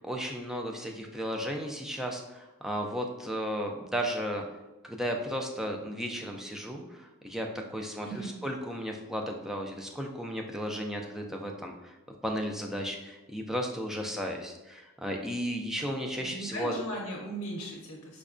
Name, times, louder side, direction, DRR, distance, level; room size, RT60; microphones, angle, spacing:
voice 1, 0.0-4.4 4.8-11.9 12.2-16.7, equal, ahead, 1 dB, 0.3 m, -34 dB
voice 2, 8.0-8.4 16.2-18.2, right 1 dB, 70° left, -2 dB, 0.6 m, -37 dB
5.0 x 2.2 x 2.4 m, 1.0 s
head